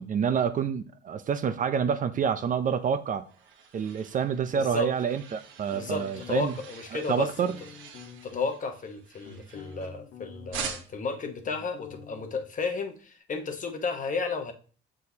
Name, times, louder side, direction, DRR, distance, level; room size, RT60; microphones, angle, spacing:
voice 1, 0.0-3.2 3.7-6.5 6.9-7.6, right 7 dB, 40° right, 0.5 m, -28 dB
sound 1, 2.8-10.1 10.5-11.2, right 6 dB, 80° right, 1.2 m, -44 dB
voice 2, 4.5-4.9 5.7-7.3 8.2-14.5, left 4 dB, 40° left, 1.0 m, -33 dB
sound 2, 5.7-6.6 7.0-8.5 9.0-10.9 11.2-12.2, left 8 dB, 80° left, 1.2 m, -47 dB
6.5 x 6.2 x 2.8 m
cardioid pair, 110°, 20 cm